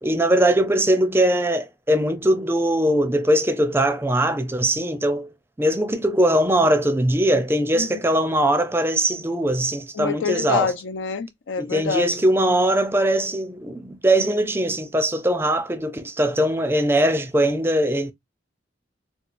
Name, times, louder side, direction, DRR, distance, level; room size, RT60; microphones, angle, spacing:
voice 1, 0.0-5.3 5.6-10.7 11.6-18.1, right 1 dB, 10° right, 0.5 m, -21 dB
voice 2, 9.9-12.1, left 6 dB, 75° left, 0.4 m, -26 dB
4.3 x 2.2 x 2.5 m
head